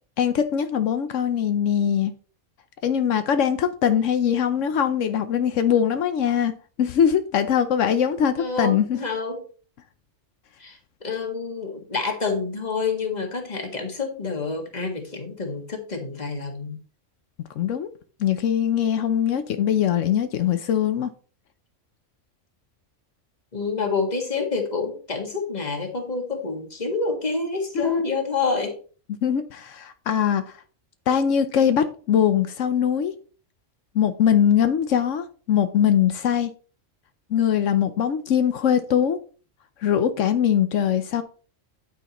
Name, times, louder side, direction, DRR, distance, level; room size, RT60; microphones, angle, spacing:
voice 1, 0.2-2.1 2.8-6.5 6.8-9.0 17.5-17.9 18.2-21.1 27.7-28.0 29.2-30.6 31.1-33.1 33.9-36.5 37.3-39.2 39.8-41.2, left 8 dB, 85° left, 9 dB, 1.1 m, -22 dB
voice 2, 8.4-9.4 10.6-16.8 23.5-28.8, left 4 dB, 35° left, 3 dB, 1.9 m, -28 dB
9.2 x 9.2 x 3.0 m, 0.38 s
omnidirectional pair, 1.3 m